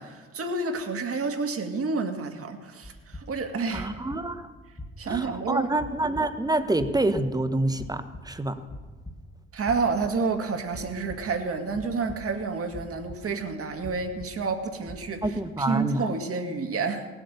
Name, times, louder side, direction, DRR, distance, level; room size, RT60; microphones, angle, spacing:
voice 1, 0.0-3.9 5.0-5.7 9.5-17.1, right 4 dB, 35° right, 6 dB, 2.2 m, -29 dB
sound 1, 2.8-15.6, left 1 dB, 10° left, 1.8 m, -45 dB
voice 2, 3.7-4.5 5.1-8.6 15.2-16.1, right 2 dB, 10° right, 10 dB, 1.1 m, -27 dB
18.0 x 8.2 x 6.7 m, 1.3 s
figure-of-eight pair, 55°, 39 cm